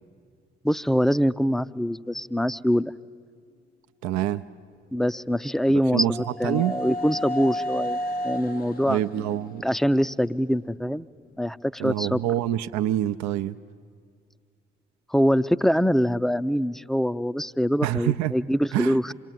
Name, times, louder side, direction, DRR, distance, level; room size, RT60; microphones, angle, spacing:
voice 1, 0.6-2.9 4.9-8.0 8.2-9.0 9.6-11.1 11.4-12.2 15.1-19.1, equal, ahead, 14 dB, 0.6 m, -24 dB
voice 2, 4.0-4.4 5.9-6.2 6.4-6.8 8.9-9.6 11.8-13.6 17.8-18.3 18.7-19.1, right 13 dB, 65° right, 9 dB, 0.6 m, -26 dB
sound 1, 5.1-11.0, equal, 85° left, 1.4 m, -34 dB
27.0 x 20.0 x 9.2 m, 2.1 s
hypercardioid pair, 40°, 30 cm